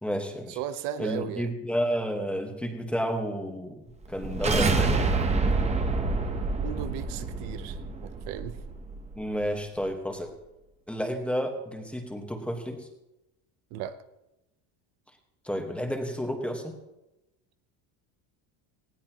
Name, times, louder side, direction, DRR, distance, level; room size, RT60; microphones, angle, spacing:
voice 1, 0.0-0.6 1.0-5.0 9.1-10.3 10.9-12.9 15.4-16.8, equal, 5° left, 3 dB, 1.4 m, -31 dB
voice 2, 0.6-1.5 6.1-8.6 13.7-14.0, right 10 dB, 70° right, 11 dB, 0.9 m, -36 dB
sound 1, 4.0-9.1, right 3 dB, 15° right, 0.9 m, -27 dB
19.0 x 16.0 x 3.0 m, 0.95 s
cardioid pair, 165°, 43 cm